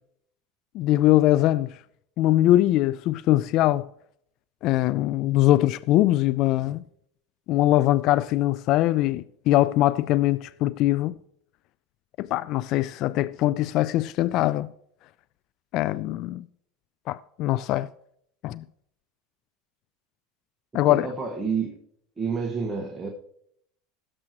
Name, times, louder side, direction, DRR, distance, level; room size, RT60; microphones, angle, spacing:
voice 1, 0.7-1.8 2.2-3.9 4.6-6.8 7.5-11.1 12.2-14.7 15.7-16.4 17.1-17.9 18.4-18.6 20.7-21.0, left 15 dB, 55° left, 0.4 m, -22 dB
voice 2, 20.9-21.8 22.2-23.1, right 5 dB, 20° right, 1.7 m, -29 dB
17.0 x 7.6 x 3.0 m
supercardioid pair, 105°, 0 cm